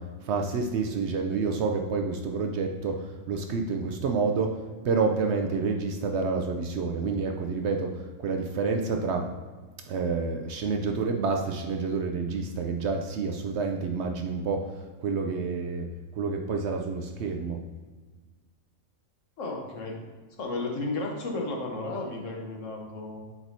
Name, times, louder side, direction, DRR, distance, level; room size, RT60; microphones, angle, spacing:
voice 1, 0.0-9.3 9.9-17.6, right 4 dB, 65° right, 3 dB, 0.7 m, -29 dB
voice 2, 19.4-20.0 20.4-23.2, left 2 dB, 70° left, 1 dB, 1.3 m, -33 dB
8.1 x 4.5 x 2.7 m, 1.4 s
omnidirectional pair, 1.4 m